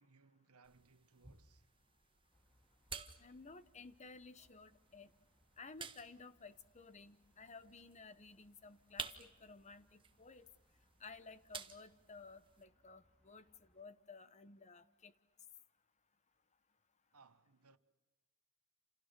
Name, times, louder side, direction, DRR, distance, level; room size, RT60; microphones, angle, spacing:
voice 1, 0.0-1.7 17.1-17.8, right 4 dB, 90° right, 1.4 m, -67 dB
sound 1, 0.6-12.6, right 5 dB, 25° right, 1.5 m, -54 dB
sound 2, 2.3-13.8, equal, 5° left, 3.6 m, -77 dB
voice 2, 3.2-5.1 5.6-10.5 11.0-13.5 13.7-15.1, left 4 dB, 30° left, 1.1 m, -55 dB
29.0 x 28.5 x 6.8 m
head